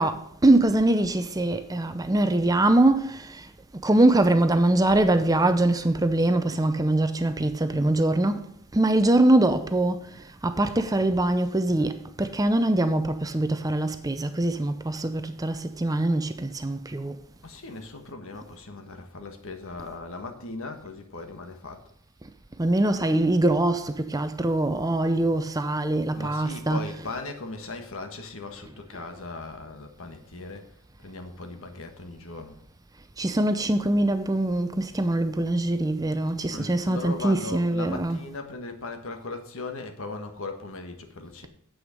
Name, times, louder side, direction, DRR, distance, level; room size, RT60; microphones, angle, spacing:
voice 1, 0.0-17.2 22.2-22.3 22.6-27.1 28.7-29.1 33.2-38.2, right 1 dB, 15° right, 0.6 m, -23 dB
voice 2, 17.4-21.9 26.1-30.7 31.0-32.6 36.5-41.5, left 3 dB, 60° left, 1.5 m, -38 dB
9.4 x 7.9 x 5.2 m
head